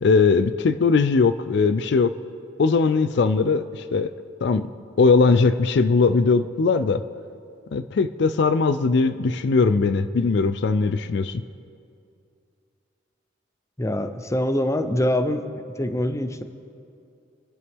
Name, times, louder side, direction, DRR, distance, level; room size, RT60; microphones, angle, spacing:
voice 1, 0.0-2.1 2.6-4.1 4.4-4.7 5.0-7.0 7.7-11.4, left 4 dB, 65° left, 12 dB, 0.4 m, -20 dB
voice 2, 13.8-15.4 15.8-16.4, left 1 dB, 15° left, 9 dB, 0.7 m, -24 dB
26.0 x 11.0 x 3.6 m, 2.5 s
head